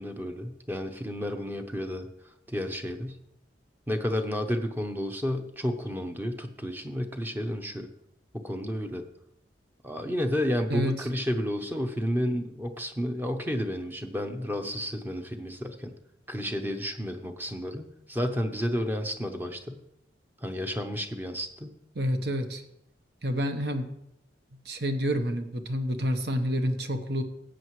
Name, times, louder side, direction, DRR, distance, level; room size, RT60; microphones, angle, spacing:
voice 1, 0.0-2.1 2.5-3.2 3.9-7.9 8.3-9.0 9.8-15.9 16.3-19.8 20.4-21.7, equal, 10° right, 6 dB, 0.8 m, -31 dB
voice 2, 21.9-22.6 23.2-23.8 24.7-27.2, equal, 60° right, 7 dB, 1.0 m, -28 dB
15.0 x 8.1 x 3.1 m, 0.78 s
head